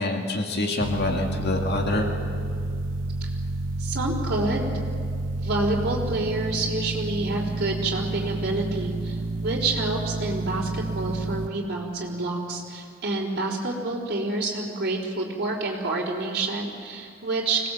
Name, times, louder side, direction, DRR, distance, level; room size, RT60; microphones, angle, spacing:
voice 1, 0.0-2.1, left 2 dB, 55° left, 2 dB, 2.3 m, -26 dB
sound 1, 0.8-11.5, right 2 dB, 65° right, 1.0 m, -30 dB
voice 2, 3.8-4.7 5.4-17.7, right 2 dB, 50° right, -5 dB, 3.9 m, -28 dB
25.5 x 19.0 x 7.8 m, 2.3 s
head